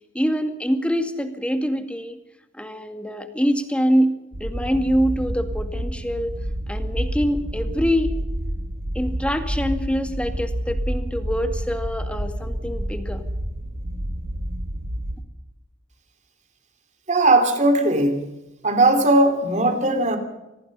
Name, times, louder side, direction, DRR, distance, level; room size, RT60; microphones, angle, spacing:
voice 1, 0.1-2.2 2.5-6.3 6.7-8.1 8.9-13.2, equal, 5° left, 7 dB, 2.0 m, -24 dB
sound 1, 4.3-15.2, equal, 85° right, 3.4 m, -29 dB
voice 2, 17.1-18.3 18.6-20.2, right 2 dB, 40° right, 7 dB, 3.2 m, -18 dB
25.5 x 19.0 x 5.6 m, 0.99 s
head